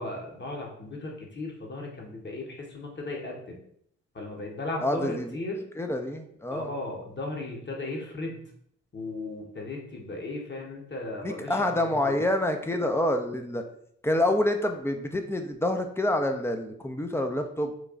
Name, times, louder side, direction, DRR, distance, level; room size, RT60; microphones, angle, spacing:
voice 1, 0.0-3.6 4.1-5.6 6.5-8.4 8.9-12.2, left 2 dB, 35° left, 0 dB, 1.2 m, -36 dB
voice 2, 4.8-5.4 5.8-6.7 11.2-13.6 14.0-17.7, left 1 dB, 10° left, 5 dB, 0.6 m, -27 dB
3.2 x 2.3 x 3.8 m, 0.68 s
hypercardioid pair, 40°, 31 cm